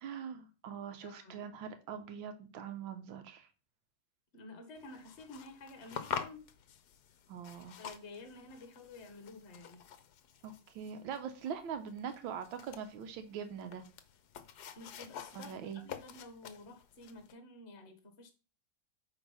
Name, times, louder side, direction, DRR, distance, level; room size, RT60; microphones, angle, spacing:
voice 1, 0.0-3.5 7.3-7.8 10.4-13.8 15.3-15.8, right 7 dB, 85° right, 1.6 m, -42 dB
voice 2, 1.0-1.5 4.3-6.5 7.8-9.8 14.8-18.3, left 2 dB, 40° left, 1.5 m, -51 dB
sound 1, 4.7-17.3, left 8 dB, 60° left, 1.2 m, -47 dB
9.0 x 3.6 x 5.6 m
omnidirectional pair, 2.1 m